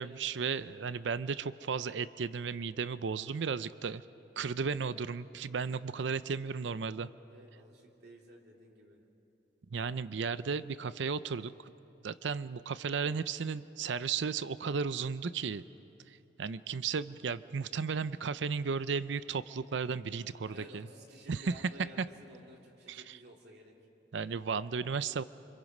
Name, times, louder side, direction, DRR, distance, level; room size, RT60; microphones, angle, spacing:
voice 1, 0.0-4.0 4.4-7.1 9.7-11.5 12.0-15.6 16.4-20.9 21.3-21.5 22.0-22.1 22.9-23.2 24.1-25.2, right 5 dB, 75° right, 15 dB, 0.5 m, -34 dB
voice 2, 7.3-9.0 20.5-23.7, right 1 dB, 60° right, -1 dB, 3.1 m, -53 dB
29.0 x 26.0 x 5.4 m, 2.9 s
head